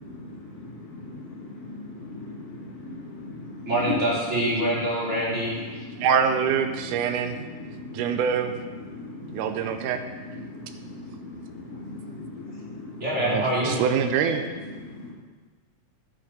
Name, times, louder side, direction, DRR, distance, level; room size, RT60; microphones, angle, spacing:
voice 1, 0.1-3.9 5.7-6.1 6.7-6.8 7.1-8.3 8.7-13.0 13.3-13.4 14.8-15.1, left 3 dB, 35° left, -7 dB, 2.1 m, -39 dB
voice 2, 3.7-5.8 13.0-13.8, right 1 dB, 20° right, -7 dB, 3.3 m, -25 dB
voice 3, 6.0-7.4 7.9-8.5 9.3-10.0 13.2-14.4, right 7 dB, 90° right, 7 dB, 2.2 m, -24 dB
9.4 x 7.9 x 5.8 m, 1.4 s
omnidirectional pair, 3.6 m